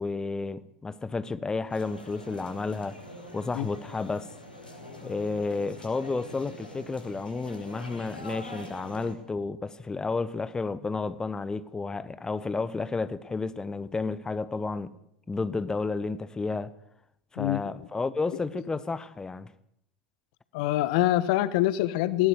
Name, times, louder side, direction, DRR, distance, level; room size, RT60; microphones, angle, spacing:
voice 1, 0.0-3.0 3.3-4.3 5.0-14.9 15.3-16.7 17.3-19.5, left 3 dB, 15° left, 1.2 m, -31 dB
sound 1, 1.7-9.1, left 1 dB, 85° left, 5.7 m, -44 dB
voice 2, 20.5-22.3, left 15 dB, 60° left, 1.3 m, -24 dB
20.0 x 18.0 x 8.0 m
figure-of-eight pair, 85°, 5 cm